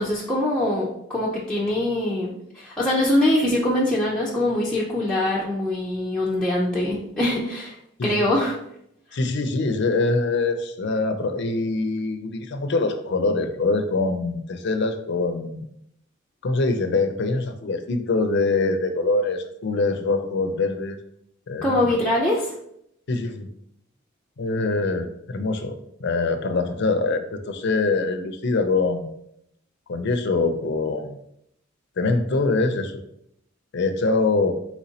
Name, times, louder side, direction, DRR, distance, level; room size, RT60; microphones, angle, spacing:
voice 1, 0.0-7.8 8.0-8.6 21.6-22.5, left 1 dB, 5° left, -6 dB, 0.5 m, -23 dB
voice 2, 8.0-8.3 9.1-15.6 16.4-21.0 21.5-22.0 23.1-23.5 24.4-29.1 29.9-31.2 32.0-33.0 33.7-34.5, left 3 dB, 60° left, 8 dB, 0.5 m, -24 dB
4.3 x 4.1 x 2.8 m, 0.75 s
head